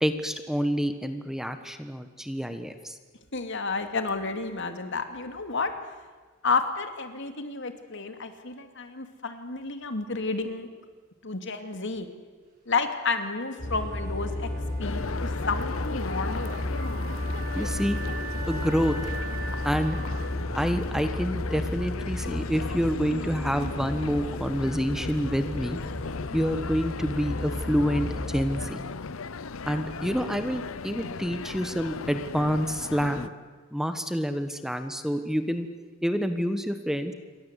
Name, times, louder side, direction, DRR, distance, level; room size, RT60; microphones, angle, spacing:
voice 1, 0.0-3.0 17.5-18.0 18.5-19.0 19.6-20.0 20.5-25.8 26.3-28.8 29.7-33.3 33.7-35.7 36.0-37.1, equal, ahead, 8 dB, 1.4 m, -28 dB
voice 2, 3.3-5.7 6.4-10.7 11.2-12.1 12.7-14.5 14.8-16.6, left 4 dB, 65° left, 7 dB, 2.6 m, -31 dB
Wind instrument woodwind instrument, 13.5-21.5, right 2 dB, 45° right, 7.5 m, -42 dB
sound 1, 13.6-28.7, left 1 dB, 40° left, 5.6 m, -33 dB
sound 2, 14.8-33.3, left 4 dB, 80° left, 0.8 m, -37 dB
28.0 x 23.0 x 8.3 m, 1.4 s
head